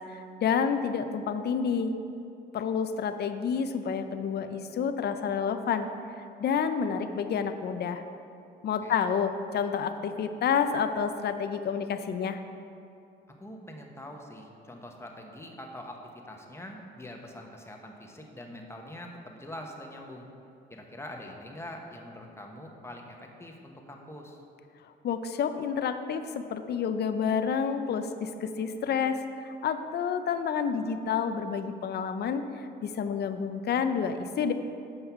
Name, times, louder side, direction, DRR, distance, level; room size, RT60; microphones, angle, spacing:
voice 1, 0.1-1.9 2.5-5.9 6.4-8.0 8.6-12.4 25.0-32.4 32.8-34.5, left 6 dB, 55° left, 9 dB, 0.5 m, -29 dB
voice 2, 13.4-16.0 16.2-20.3 20.7-24.4, left 1 dB, 15° left, 1 dB, 1.1 m, -44 dB
8.0 x 5.4 x 5.7 m, 2.6 s
cardioid pair, 90°, 20 cm